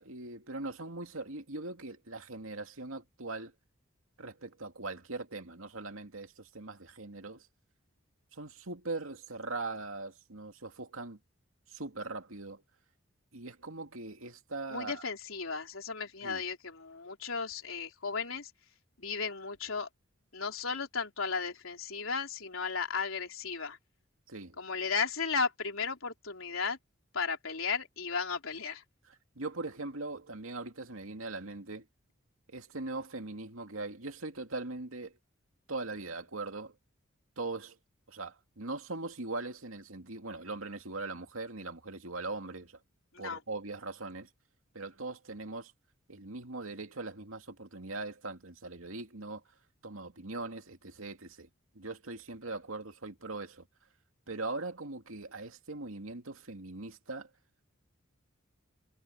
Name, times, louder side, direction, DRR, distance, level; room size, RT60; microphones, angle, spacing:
voice 1, 0.0-3.5 4.2-7.5 8.3-11.2 11.7-12.6 13.3-15.0 16.2-16.4 24.3-24.6 29.1-31.9 32.5-35.2 35.7-36.7 37.4-37.8 38.1-42.8 43.2-44.3 44.7-45.7 46.1-49.4 49.8-51.5 51.7-53.6 54.3-57.3, right 3 dB, 90° right, 2.5 m, -40 dB
voice 2, 14.7-18.5 19.0-19.9 20.3-23.8 24.6-26.8 27.1-28.8 43.1-43.4, left 5 dB, 85° left, 3.6 m, -35 dB
head